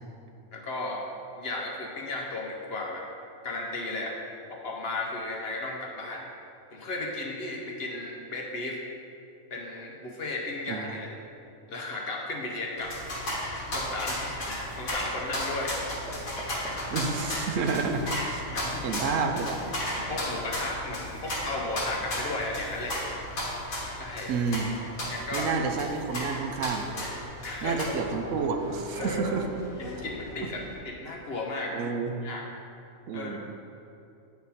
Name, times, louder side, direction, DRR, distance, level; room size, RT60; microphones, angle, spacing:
voice 1, 0.5-1.0 1.4-3.1 3.4-4.2 4.5-6.2 6.7-8.8 9.5-11.1 11.7-15.9 18.5-19.2 19.9-23.0 23.9-24.3 25.1-25.5 27.4-27.8 29.0-29.2 29.8-31.7 32.2-32.4 33.1-33.4, left 2 dB, 55° left, 0 dB, 0.9 m, -35 dB
sound 1, 12.8-30.7, left 1 dB, 85° left, 1.9 m, -35 dB
sound 2, 15.8-16.1 16.4-16.7 17.0-17.3 17.7-17.9 18.2-18.3 18.7-19.3 19.6-20.6, right 1 dB, ahead, 0.5 m, -42 dB
voice 2, 16.9-18.4 18.8-19.6 24.3-24.7 25.3-26.9 27.6-29.4 31.7-32.2 33.1-33.4, right 5 dB, 70° right, 5 dB, 0.9 m, -29 dB
9.1 x 4.2 x 4.1 m, 2.6 s
omnidirectional pair, 1.4 m